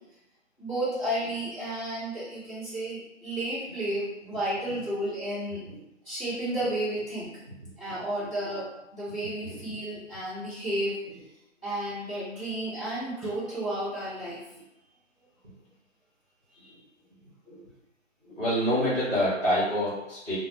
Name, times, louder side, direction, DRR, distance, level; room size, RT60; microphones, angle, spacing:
voice 1, 0.6-5.6 6.0-7.3 7.8-8.7 8.9-11.0 11.6-14.4 16.5-16.7, right 1 dB, 15° left, -15 dB, 1.1 m, -32 dB
voice 2, 18.2-20.4, equal, 10° right, -13 dB, 1.2 m, -27 dB
3.8 x 2.0 x 2.9 m, 0.87 s
figure-of-eight pair, 160°, 38 cm